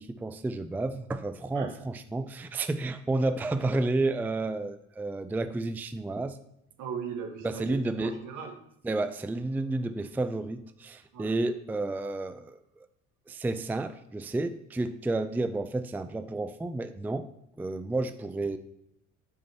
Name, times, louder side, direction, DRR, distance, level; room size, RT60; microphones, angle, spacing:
voice 1, 0.0-6.4 7.4-8.2 8.8-12.6 13.3-17.3 17.6-18.6, right 2 dB, 5° right, 11 dB, 0.4 m, -31 dB
voice 2, 6.8-8.6 11.1-11.4, right 6 dB, 70° right, 3 dB, 1.5 m, -38 dB
8.5 x 7.1 x 2.9 m, 0.78 s
supercardioid pair, 75°, 32 cm